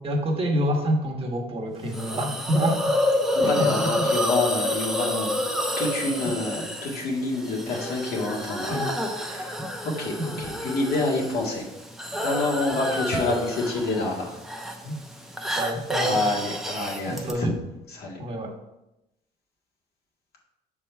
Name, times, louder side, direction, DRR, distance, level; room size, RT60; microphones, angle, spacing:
voice 1, 0.0-2.9 3.4-3.7 8.7-8.9 9.3-9.4 10.2-10.3 14.8-14.9 15.5-16.2 17.0-17.5 18.2-18.5, equal, 35° right, 0 dB, 1.3 m, -27 dB
Hiss, 1.9-17.3, left 1 dB, ahead, 0.7 m, -29 dB
voice 2, 3.2-11.6 12.1-14.4 16.0-17.5 17.9-18.2, left 2 dB, 70° left, -1 dB, 1.8 m, -28 dB
5.9 x 4.6 x 4.5 m, 0.92 s
cardioid pair, 110°, 17 cm